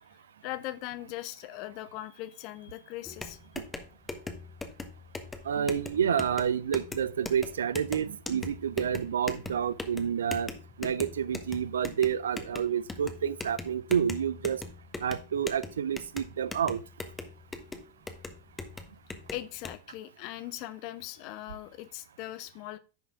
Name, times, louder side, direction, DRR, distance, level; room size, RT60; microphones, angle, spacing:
voice 1, 0.4-3.4 19.3-22.8, left 15 dB, 45° left, 0.8 m, -40 dB
sound 1, 3.1-19.8, left 3 dB, 10° left, 1.2 m, -41 dB
voice 2, 5.4-10.5 10.8-14.6 15.0-16.8, right 8 dB, 65° right, 0.5 m, -29 dB
10.5 x 5.5 x 3.6 m
figure-of-eight pair, 90°, 0 cm